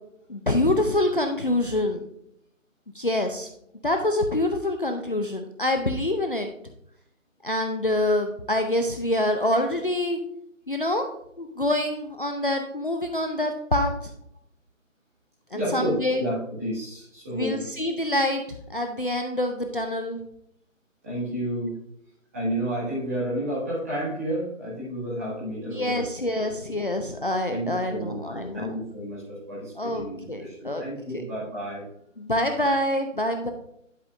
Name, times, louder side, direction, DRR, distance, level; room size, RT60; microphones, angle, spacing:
voice 1, 0.3-2.0 2.9-3.5 3.8-6.5 7.4-10.2 10.7-11.1 11.4-13.9 15.5-16.2 17.3-18.4 18.7-20.2 25.7-28.7 29.8-30.8 31.1-31.2 32.2-33.5, left 1 dB, 40° left, 4 dB, 0.6 m, -26 dB
voice 2, 15.5-17.6 21.0-21.8 22.3-26.1 27.5-31.9, right 1 dB, 10° right, -9 dB, 1.9 m, -31 dB
11.0 x 5.3 x 2.6 m, 0.74 s
figure-of-eight pair, 170°, 40 cm